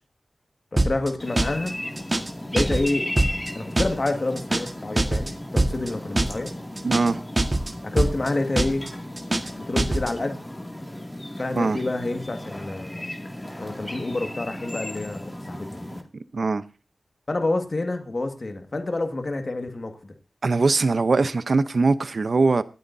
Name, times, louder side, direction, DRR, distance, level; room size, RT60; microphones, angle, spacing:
voice 1, 0.7-1.8 2.5-3.1 3.6-6.5 7.8-8.9 9.6-10.4 11.4-13.0 13.6-15.9 17.3-19.9, left 2 dB, 50° left, 1.8 m, -28 dB
sound 1, 0.8-1.1 1.4-1.7 2.0-2.3 2.6-2.9 3.2-3.5 3.8-4.1 4.4-4.7 5.0-5.3 5.6-5.9 6.2-6.5 6.8-7.1 7.4-7.7 8.0-8.3 8.6-8.9 9.2-9.5 9.8-10.1, right 2 dB, 35° right, 1.6 m, -23 dB
sound 2, 1.2-16.0, left 1 dB, 20° left, 2.3 m, -36 dB
voice 2, 6.8-7.2 11.6-11.8 16.3-16.6 20.4-22.6, right 3 dB, 65° right, 0.8 m, -21 dB
25.0 x 9.5 x 2.7 m
cardioid pair, 45°, 0 cm